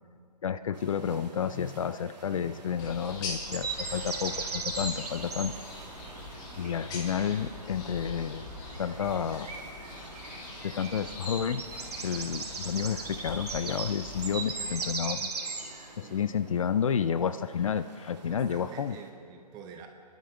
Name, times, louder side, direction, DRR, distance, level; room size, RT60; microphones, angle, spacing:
voice 1, 0.4-5.6 6.6-8.5 8.8-9.5 10.6-15.4 16.0-19.0, left 8 dB, 50° left, 12 dB, 0.5 m, -31 dB
sound 1, 0.7-19.1, right 3 dB, 85° right, 2.2 m, -52 dB
sound 2, 2.8-15.0, left 3 dB, 20° left, 1.6 m, -43 dB
sound 3, 3.4-15.9, right 4 dB, 65° right, 2.7 m, -39 dB
voice 2, 16.0-16.7 18.1-19.9, right 6 dB, 20° right, 4 dB, 1.2 m, -47 dB
28.5 x 11.5 x 3.4 m, 2.4 s
figure-of-eight pair, 140°, 21 cm